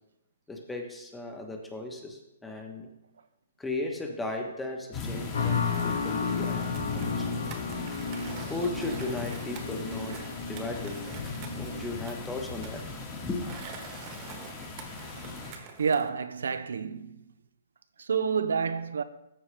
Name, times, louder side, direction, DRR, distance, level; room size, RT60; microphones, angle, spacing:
voice 1, 0.5-2.9 3.6-7.5 8.5-10.2 10.5-11.1 11.5-12.8 13.2-13.6, left 2 dB, 5° left, 1.2 m, -36 dB
sound 1, 4.9-15.5, left 3 dB, 25° left, 1.7 m, -39 dB
sound 2, 5.3-12.2, left 5 dB, 85° left, 2.1 m, -33 dB
Skateboard, 6.1-16.1, right 5 dB, 35° right, 1.3 m, -47 dB
voice 2, 15.5-17.2 18.0-19.0, right 6 dB, 80° right, 0.5 m, -29 dB
13.5 x 4.8 x 3.3 m
hypercardioid pair, 140°, 0 cm